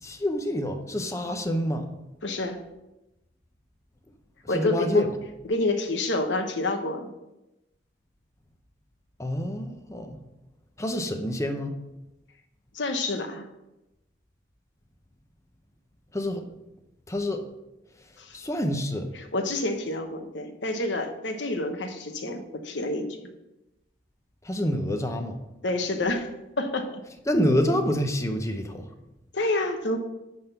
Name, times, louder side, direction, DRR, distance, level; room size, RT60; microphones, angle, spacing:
voice 1, 0.0-1.9 4.5-5.1 9.2-10.2 10.8-11.7 16.1-16.4 17.1-17.4 18.3-19.1 24.4-25.4 27.3-28.8, left 1 dB, 15° left, 5 dB, 0.8 m, -27 dB
voice 2, 2.2-2.6 4.5-5.1 5.4-7.1 12.7-13.5 18.2-18.4 19.1-23.1 25.6-26.3 26.6-27.0 29.3-30.0, left 2 dB, 75° left, 6 dB, 1.0 m, -28 dB
10.5 x 3.7 x 6.7 m, 0.97 s
head